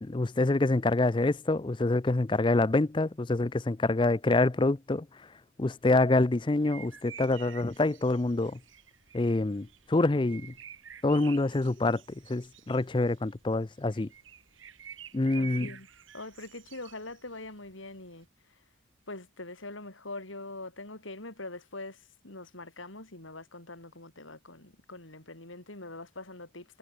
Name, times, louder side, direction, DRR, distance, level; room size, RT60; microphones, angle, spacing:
voice 1, 0.0-5.1 5.6-8.6 9.1-10.5 11.0-14.1 15.1-15.7, left 2 dB, 25° left, 0.5 m, -26 dB
sound 1, 6.5-18.2, right 8 dB, 85° right, 5.9 m, -50 dB
voice 2, 15.3-15.9 16.1-18.7 19.1-26.8, left 2 dB, 85° left, 5.8 m, -43 dB
head